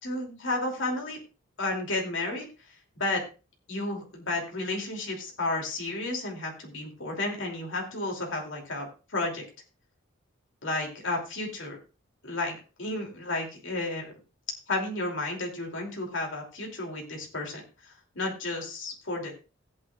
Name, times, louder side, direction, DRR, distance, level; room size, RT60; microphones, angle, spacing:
voice 1, 0.0-1.2 1.6-2.5 3.0-3.2 3.7-9.4 10.6-11.8 12.2-14.1 14.7-19.3, left 2 dB, 60° left, 1 dB, 2.7 m, -32 dB
16.0 x 8.8 x 2.4 m, 0.31 s
head